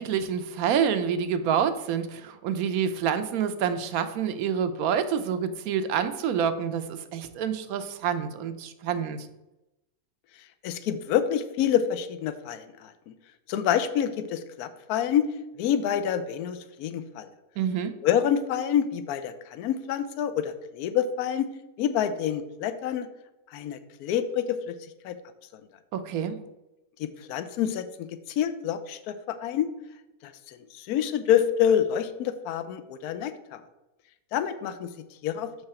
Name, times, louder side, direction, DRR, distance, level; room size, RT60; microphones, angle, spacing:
voice 1, 0.0-9.3 17.6-17.9 25.9-26.4, right 8 dB, 75° right, 10 dB, 1.0 m, -27 dB
voice 2, 10.6-13.1 13.5-15.3 15.6-17.3 18.0-21.5 21.8-23.1 23.5-24.7 25.0-25.2 25.5-25.6 27.0-29.7 30.2-33.6 34.3-34.9 35.2-35.5, left 9 dB, 80° left, 11 dB, 1.1 m, -27 dB
6.4 x 4.8 x 4.2 m, 0.95 s
omnidirectional pair, 1.6 m